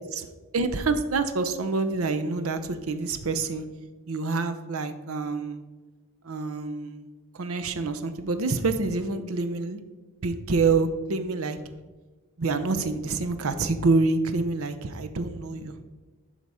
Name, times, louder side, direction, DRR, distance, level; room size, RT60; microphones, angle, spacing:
voice 1, 0.5-3.6 4.1-5.6 6.2-7.1 7.3-9.8 10.2-11.6 12.4-15.8, right 3 dB, 75° right, 9 dB, 0.7 m, -27 dB
11.0 x 4.0 x 4.8 m, 1.3 s
head